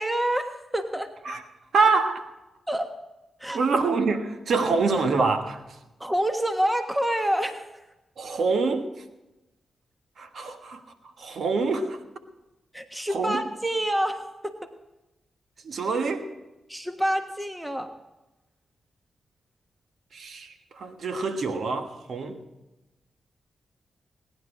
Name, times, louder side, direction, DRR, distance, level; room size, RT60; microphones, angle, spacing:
voice 1, 0.0-1.1 2.7-2.9 3.4-3.6 6.0-7.7 12.7-14.7 16.7-17.9, right 1 dB, 10° right, 1.3 m, -27 dB
voice 2, 1.7-2.3 3.5-5.6 8.2-8.9 10.2-10.8 11.2-12.0 13.1-13.4 15.6-16.3 20.1-22.4, right 4 dB, 70° right, 1.4 m, -25 dB
18.0 x 10.5 x 5.0 m
supercardioid pair, 40°, 0 cm